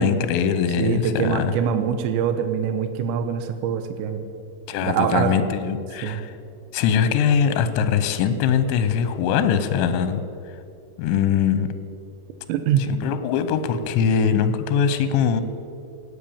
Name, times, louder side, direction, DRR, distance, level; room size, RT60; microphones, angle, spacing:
voice 1, 0.0-1.5 4.7-6.3 6.7-10.2 11.0-11.7 12.9-15.4, left 7 dB, 85° left, 11 dB, 3.1 m, -22 dB
voice 2, 0.8-4.2 4.8-5.3 6.0-6.2 12.5-12.8, right 8 dB, 85° right, 8 dB, 3.0 m, -23 dB
17.5 x 7.9 x 7.1 m, 2.6 s
omnidirectional pair, 5.2 m